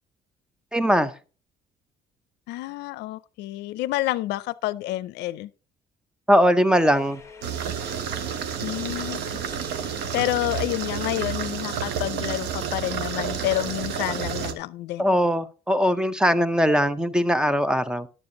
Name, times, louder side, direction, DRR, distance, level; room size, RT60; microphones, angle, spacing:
voice 1, 0.7-1.1 6.3-7.2 15.0-18.1, equal, 5° right, 0.6 m, -20 dB
voice 2, 2.5-5.5 8.6-9.3 10.1-15.2, left 16 dB, 85° left, 0.5 m, -29 dB
sound 1, 6.8-11.8, left 5 dB, 15° left, 1.2 m, -46 dB
sound 2, 7.4-14.5, right 8 dB, 85° right, 1.0 m, -30 dB
11.0 x 7.0 x 3.8 m
cardioid pair, 110°, 17 cm